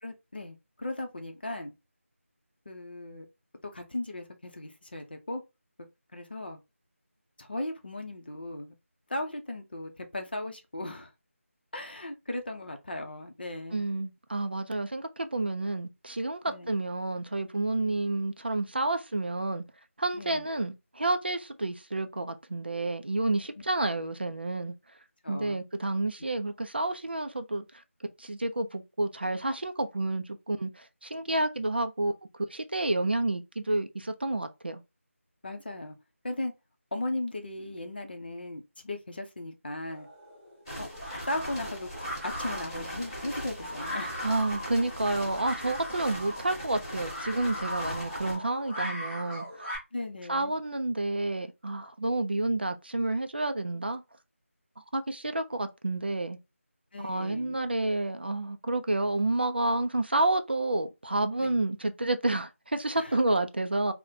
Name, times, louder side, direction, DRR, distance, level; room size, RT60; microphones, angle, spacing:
voice 1, 0.0-1.7 2.7-3.3 3.7-5.4 6.1-6.6 7.4-8.7 9.1-11.1 11.7-13.8 16.5-16.7 17.9-18.0 20.1-20.4 24.0-24.1 25.2-25.6 35.4-36.0 36.2-36.5 36.9-40.1 40.8-40.9 41.3-41.9 42.2-44.2 49.9-50.5 56.9-57.6 61.4-61.6 63.0-63.2, left 1 dB, 45° left, 0.6 m, -37 dB
voice 2, 13.7-19.6 20.0-24.7 25.3-27.6 28.2-32.1 32.5-34.8 44.2-49.7 50.3-54.0 54.9-56.4 57.0-63.9, right 2 dB, 45° right, 0.4 m, -30 dB
sound 1, 39.9-49.8, equal, 10° right, 1.9 m, -40 dB
sound 2, 40.7-48.4, equal, 20° left, 1.1 m, -40 dB
3.9 x 2.1 x 2.6 m
figure-of-eight pair, 175°, 8 cm